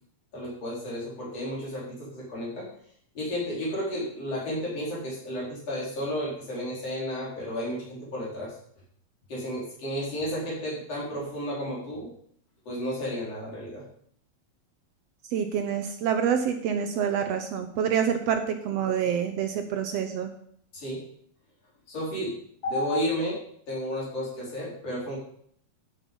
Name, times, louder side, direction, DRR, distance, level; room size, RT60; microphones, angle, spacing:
voice 1, 0.3-2.7 3.2-8.5 9.3-12.1 12.7-13.9 20.7-21.0 21.9-25.2, equal, 55° left, -6 dB, 5.4 m, -32 dB
voice 2, 15.3-20.3, right 8 dB, 70° right, 7 dB, 1.6 m, -27 dB
14.0 x 5.9 x 5.4 m, 0.65 s
omnidirectional pair, 3.4 m